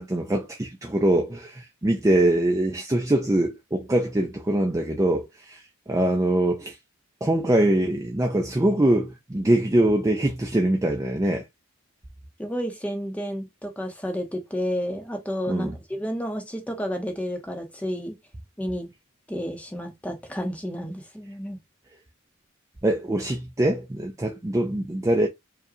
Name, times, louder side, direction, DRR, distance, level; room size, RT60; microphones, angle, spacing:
voice 1, 0.0-6.8 7.2-11.5 15.5-15.8 22.8-25.3, right 1 dB, 15° right, 0.4 m, -23 dB
voice 2, 12.4-18.2 18.6-18.9 19.3-21.6, equal, 5° left, 0.8 m, -31 dB
4.8 x 2.3 x 2.7 m
head